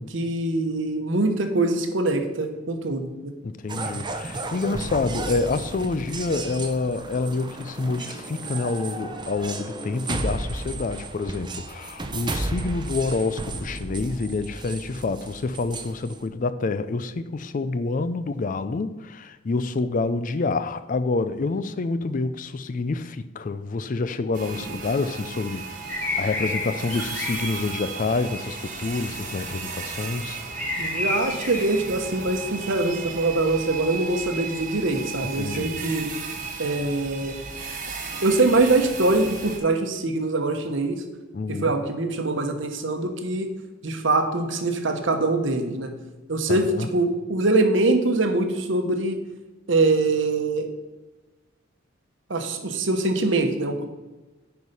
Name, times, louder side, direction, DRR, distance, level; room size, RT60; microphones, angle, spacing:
voice 1, 0.1-3.3 30.8-36.1 36.6-37.3 38.2-41.0 41.5-43.5 43.8-45.9 46.3-49.2 49.7-50.7 52.3-53.9, right 2 dB, 65° right, 1.0 m, -23 dB
voice 2, 3.4-30.4 35.4-35.8 41.3-41.7 46.5-46.9, left 3 dB, 40° left, 0.4 m, -27 dB
sound 1, 3.7-16.2, right 2 dB, 20° right, 0.6 m, -33 dB
sound 2, 24.3-39.6, right 4 dB, 40° right, 1.3 m, -35 dB
sound 3, 25.9-32.8, left 2 dB, 10° left, 1.3 m, -33 dB
9.7 x 4.8 x 5.4 m
head